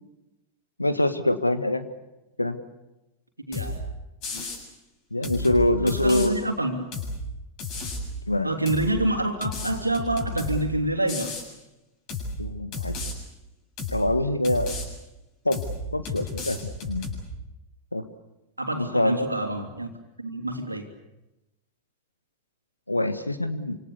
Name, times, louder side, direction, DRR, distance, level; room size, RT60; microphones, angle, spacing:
voice 1, 0.8-1.9 2.4-2.6 5.1-6.3 8.3-8.5 12.4-12.9 13.9-14.7 15.4-15.6 15.9-17.1 17.9-18.1 18.8-19.5 22.9-23.8, left 1 dB, 85° left, 11 dB, 1.6 m, -25 dB
sound 1, 3.5-3.8 4.2-4.6 5.2-6.3 6.9-7.2 7.6-8.1 8.6-8.9 9.4-10.6 11.1-11.5 12.1-12.4 12.7-13.1 13.8-14.0 14.4-14.9 15.5-15.8 16.0-17.2, left 3 dB, 40° left, 7.4 m, -32 dB
voice 2, 3.5-3.8 5.8-6.8 8.4-11.3 18.6-19.9 20.2-20.9, right 1 dB, 85° right, 5 dB, 3.1 m, -27 dB
27.5 x 26.0 x 7.0 m, 0.97 s
figure-of-eight pair, 90°, 0 cm